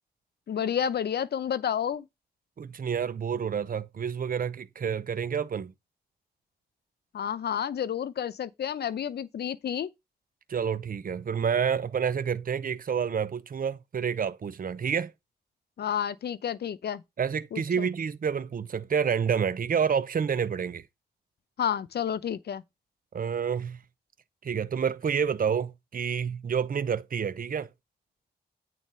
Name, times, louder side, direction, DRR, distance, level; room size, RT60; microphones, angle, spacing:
voice 1, 0.5-2.0 7.1-9.9 15.8-17.0 17.5-17.9 21.6-22.6, left 9 dB, 90° left, 0.7 m, -30 dB
voice 2, 2.6-5.7 10.5-15.1 17.2-20.8 23.1-23.8 24.4-27.7, right 7 dB, 60° right, 0.7 m, -29 dB
9.1 x 4.1 x 5.5 m
cardioid pair, 60°, 16 cm